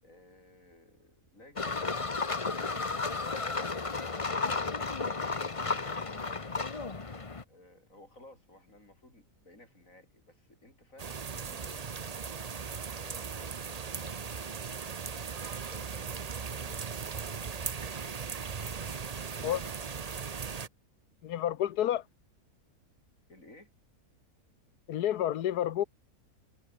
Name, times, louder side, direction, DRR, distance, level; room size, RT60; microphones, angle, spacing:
voice 1, 0.0-2.0 2.5-3.5 4.7-7.0 7.5-11.9 12.9-14.8 15.1-17.7 18.7-19.7 21.9-22.0 23.3-23.7, left 2 dB, 55° left, 8.3 m, -56 dB
sound 1, 1.6-7.4, left 4 dB, 25° left, 1.1 m, -33 dB
sound 2, 11.0-20.7, right 6 dB, 35° right, 0.6 m, -38 dB
voice 2, 21.2-22.0 24.9-25.8, left 11 dB, 85° left, 1.4 m, -29 dB
omnidirectional pair, 1.6 m